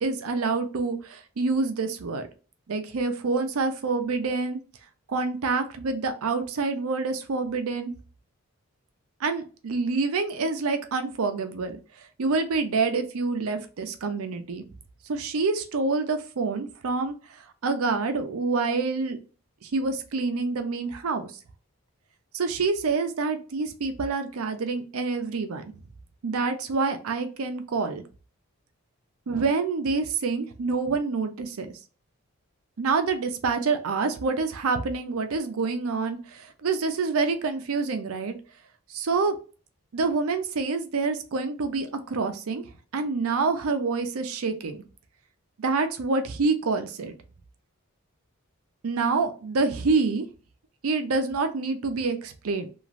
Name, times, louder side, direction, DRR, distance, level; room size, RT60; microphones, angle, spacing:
voice 1, 0.0-2.3 2.7-4.6 5.1-7.9 9.2-11.8 12.2-14.6 15.1-17.1 17.6-19.2 19.6-21.3 22.3-25.6 26.2-28.0 29.3-31.7 32.8-38.4 38.9-39.4 39.9-42.7 42.9-44.8 45.6-47.1 48.8-50.3 50.8-52.7, right 4 dB, 80° right, 8 dB, 0.5 m, -27 dB
3.0 x 2.5 x 2.4 m, 0.37 s
head